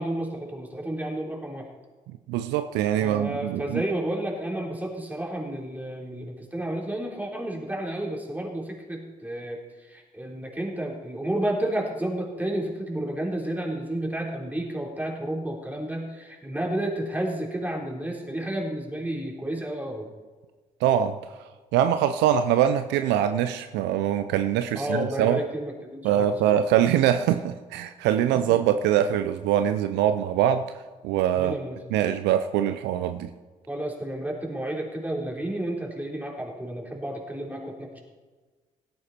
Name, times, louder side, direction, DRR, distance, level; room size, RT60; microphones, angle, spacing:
voice 1, 0.0-1.7 3.0-20.1 24.7-26.6 31.3-31.8 33.7-38.0, right 1 dB, 10° right, -1 dB, 4.2 m, -31 dB
voice 2, 2.3-3.8 20.8-21.2 21.7-25.4 26.0-30.6 31.0-31.6 31.9-33.3, right 10 dB, 70° right, 10 dB, 0.6 m, -23 dB
17.0 x 9.5 x 4.4 m, 1.3 s
hypercardioid pair, 45°, 18 cm